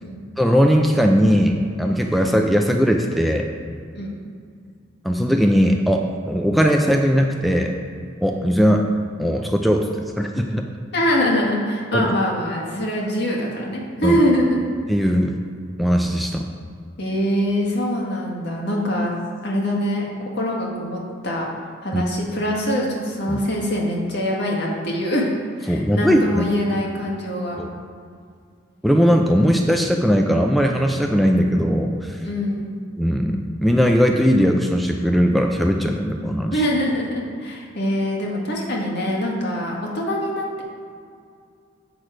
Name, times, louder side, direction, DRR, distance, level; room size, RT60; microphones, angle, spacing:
voice 1, 0.4-3.5 5.0-7.8 8.2-8.8 9.2-9.9 10.2-10.6 11.9-12.1 14.0-14.2 14.9-15.3 15.8-16.4 21.9-22.1 23.3-23.4 25.7-26.5 27.6-27.7 28.8-32.2 33.0-36.6, equal, ahead, 2 dB, 0.4 m, -19 dB
voice 2, 10.9-14.6 17.0-19.1 19.4-21.5 21.8-25.3 25.6-27.6 32.2-32.7 36.5-40.6, equal, 65° left, -2 dB, 1.7 m, -23 dB
7.8 x 6.3 x 5.0 m, 2.2 s
head